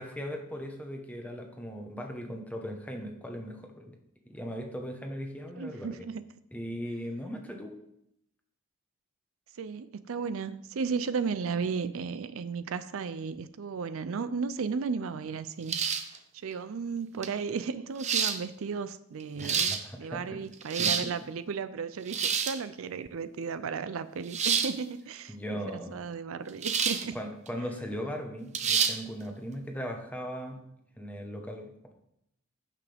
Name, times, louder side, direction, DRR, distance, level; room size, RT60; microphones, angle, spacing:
voice 1, 0.0-4.0 4.3-6.0 6.5-7.8 19.4-20.4 20.7-21.1 25.3-26.0 27.1-30.6 30.9-31.9, equal, 5° left, 2 dB, 1.1 m, -38 dB
voice 2, 5.5-6.2 9.5-15.8 16.4-27.2, right 5 dB, 70° right, 13 dB, 0.4 m, -34 dB
sound 1, 15.7-16.2 17.2-17.3 18.0-18.4 19.2-19.8 20.5-21.1 22.1-22.6 24.3-24.7 26.6-27.1 27.5-27.6 28.5-29.0, right 7 dB, 30° right, 0.7 m, -28 dB
15.0 x 5.9 x 3.5 m, 0.78 s
head